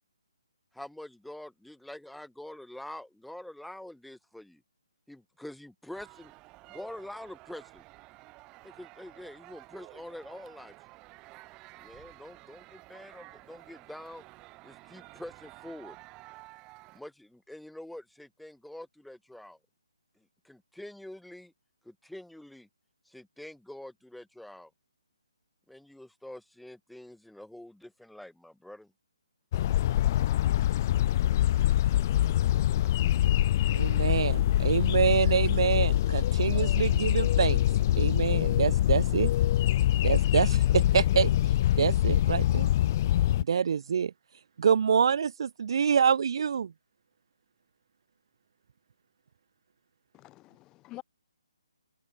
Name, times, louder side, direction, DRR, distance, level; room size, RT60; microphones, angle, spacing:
voice 1, 0.7-4.6 5.1-6.3 6.7-7.8 8.6-10.7 11.8-14.2 14.6-16.0 16.9-19.6 20.4-21.5 21.8-22.7 23.1-24.7 25.7-28.9, left 1 dB, ahead, 1.9 m, -45 dB
sound 1, 5.9-17.0, right 22 dB, 20° right, 1.2 m, -52 dB
sound 2, 29.5-43.4, left 13 dB, 35° left, 0.4 m, -24 dB
voice 2, 33.7-37.6 38.0-39.3 40.0-41.3 41.8-42.7 43.5-44.1 44.6-46.7, right 7 dB, 55° right, 0.3 m, -26 dB
voice 3, 50.1-51.0, left 18 dB, 15° left, 1.7 m, -47 dB
hypercardioid pair, 155°, 3 cm